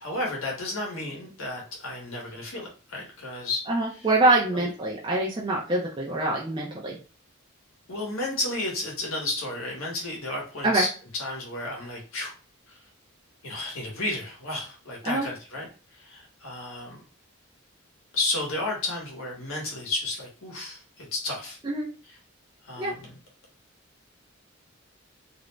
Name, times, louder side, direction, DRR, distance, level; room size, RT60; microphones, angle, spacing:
voice 1, 0.0-3.6 4.5-4.7 7.9-12.3 12.7-12.8 13.4-15.7 16.0-17.0 18.1-21.6 22.6-23.1, left 2 dB, 75° left, -1 dB, 0.9 m, -32 dB
voice 2, 3.7-7.0 10.6-10.8 15.0-15.3 21.6-21.9 22.8-22.9, right 2 dB, 20° right, -3 dB, 0.4 m, -24 dB
2.4 x 2.0 x 3.1 m, 0.36 s
head